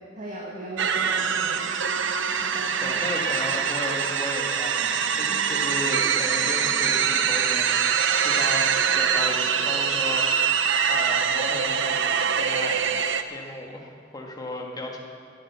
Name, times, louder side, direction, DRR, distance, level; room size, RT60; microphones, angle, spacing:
voice 1, 0.2-1.7 2.4-3.0 5.3-5.5, right 2 dB, 40° right, -5 dB, 2.1 m, -38 dB
sound 1, 0.8-13.2, right 7 dB, 70° right, 0.7 m, -24 dB
voice 2, 2.8-10.6 10.9-12.8 13.3-15.0, left 1 dB, 20° left, 0 dB, 1.8 m, -35 dB
13.5 x 10.0 x 7.0 m, 2.3 s
head